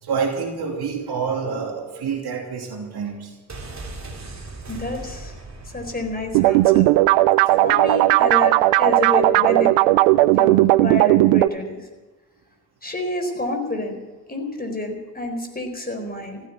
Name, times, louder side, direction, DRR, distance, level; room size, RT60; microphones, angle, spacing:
voice 1, 0.0-3.3, right 5 dB, 55° right, 2 dB, 2.8 m, -27 dB
sound 1, 3.5-7.3 7.5-7.6, right 2 dB, 35° right, 3.2 m, -38 dB
voice 2, 4.7-5.3 5.6-6.9 7.5-9.8 10.3-11.9 12.8-14.0 14.3-16.4, left 2 dB, 20° left, 4 dB, 4.2 m, -28 dB
sound 2, 6.3-11.5, right 17 dB, 75° right, 0.6 m, -16 dB
15.0 x 8.9 x 9.4 m, 1.2 s
hypercardioid pair, 40°, 45 cm